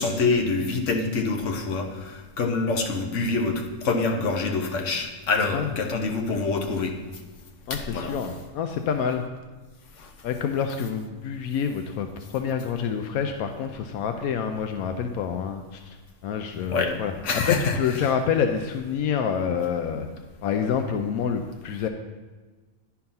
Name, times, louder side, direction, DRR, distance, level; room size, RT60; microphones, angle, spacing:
voice 1, 0.0-6.9 7.7-8.1 10.0-10.1 16.7-16.9 17.2-17.8, left 3 dB, 60° left, 3 dB, 1.3 m, -26 dB
voice 2, 7.7-9.2 10.2-16.0 16.2-20.1 20.4-21.9, left 7 dB, 85° left, 6 dB, 1.1 m, -27 dB
10.5 x 4.5 x 5.5 m, 1.3 s
omnidirectional pair, 1.5 m